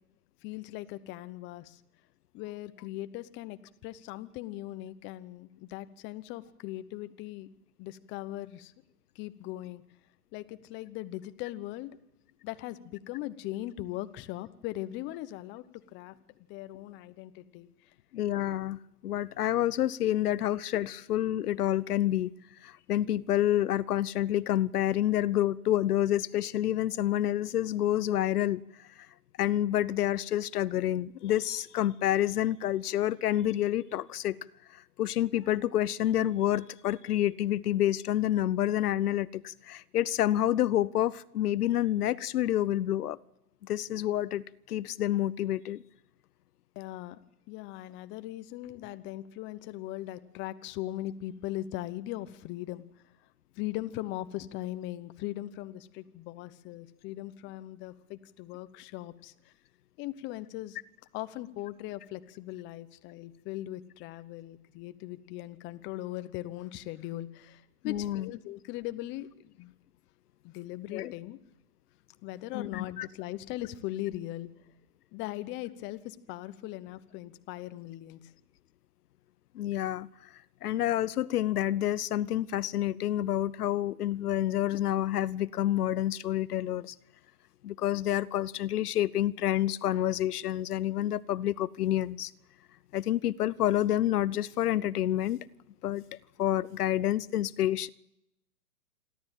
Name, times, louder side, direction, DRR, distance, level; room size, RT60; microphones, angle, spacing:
voice 1, 0.4-1.8 2.3-7.5 7.8-8.7 9.1-9.8 10.3-11.9 12.4-15.6 15.9-16.1 16.5-17.9 46.8-47.2 47.5-52.8 53.5-59.5 60.0-60.8 61.1-69.7 70.4-71.4 72.2-74.5 75.1-78.3, left 15 dB, 25° left, 0.9 m, -39 dB
voice 2, 18.1-22.3 22.6-28.9 29.4-34.4 34.7-43.2 43.6-45.8 67.8-68.3 70.9-71.1 72.5-73.1 79.5-80.1 80.6-86.9 87.6-92.3 92.9-95.4 95.8-96.0 96.4-97.9, left 12 dB, 70° left, 0.8 m, -28 dB
27.5 x 12.5 x 9.1 m
hypercardioid pair, 140°, 47 cm